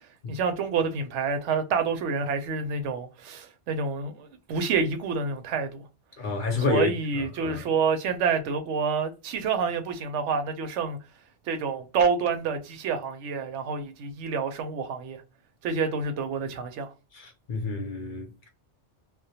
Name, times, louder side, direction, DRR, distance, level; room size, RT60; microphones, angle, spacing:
voice 1, 0.3-5.8 6.7-11.0 11.5-15.2 15.6-16.9, right 5 dB, 85° right, 0.9 m, -28 dB
voice 2, 6.2-7.7 17.1-18.5, left 4 dB, 55° left, 0.6 m, -30 dB
2.2 x 2.1 x 2.7 m
omnidirectional pair, 1.2 m